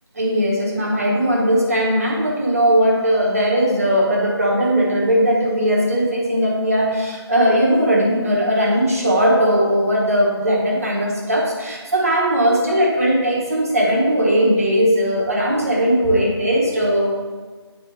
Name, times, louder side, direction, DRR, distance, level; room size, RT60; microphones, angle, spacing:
voice 1, 0.1-17.1, equal, 35° right, -2 dB, 1.2 m, -18 dB
10.0 x 3.4 x 3.3 m, 1.4 s
figure-of-eight pair, 165°, 14 cm